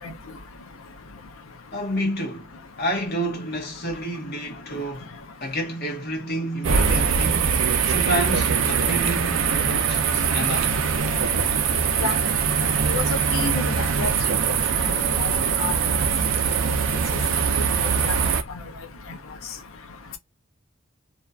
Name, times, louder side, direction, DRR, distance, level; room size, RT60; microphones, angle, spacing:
voice 1, 1.7-5.1 5.4-10.8, right 1 dB, 50° left, 1.0 m, -29 dB
sound 1, 6.6-18.4, right 6 dB, 75° right, 0.5 m, -22 dB
voice 2, 13.3-14.1 14.9-15.3 15.6-15.7 17.5-18.1 18.5-18.6, left 4 dB, 85° left, 0.6 m, -30 dB
2.6 x 2.3 x 2.3 m
head